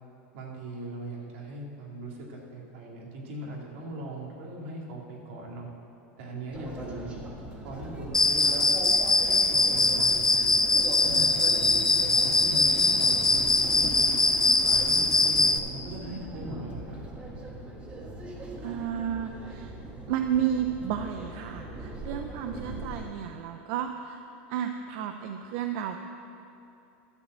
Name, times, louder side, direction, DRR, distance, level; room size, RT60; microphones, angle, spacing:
voice 1, 0.3-5.7 6.2-7.2 7.6-8.7 9.2-10.6 11.0-14.2 14.7-17.0, right 1 dB, 80° right, -2 dB, 2.3 m, -39 dB
sound 1, 6.5-23.1, right 1 dB, 20° right, 1.3 m, -40 dB
Cricket, 8.1-15.6, left 2 dB, 10° left, 0.4 m, -22 dB
voice 2, 18.6-19.7 20.1-24.2 24.5-26.0, right 9 dB, 60° right, 6 dB, 0.5 m, -32 dB
12.0 x 4.9 x 7.6 m, 2.8 s
supercardioid pair, 145°, 7 cm